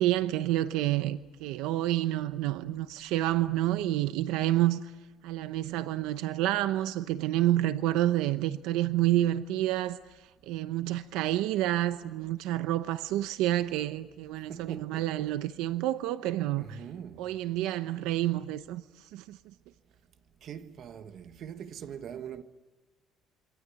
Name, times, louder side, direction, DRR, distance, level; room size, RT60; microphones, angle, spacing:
voice 1, 0.0-4.8 5.2-10.0 10.5-16.8 17.2-18.8 19.1-19.4, right 14 dB, 90° right, 0.8 m, -29 dB
voice 2, 14.5-15.3 16.6-17.4 20.4-22.4, right 8 dB, 50° right, 1.5 m, -42 dB
27.5 x 24.0 x 8.3 m
cardioid pair, 145°, 0 cm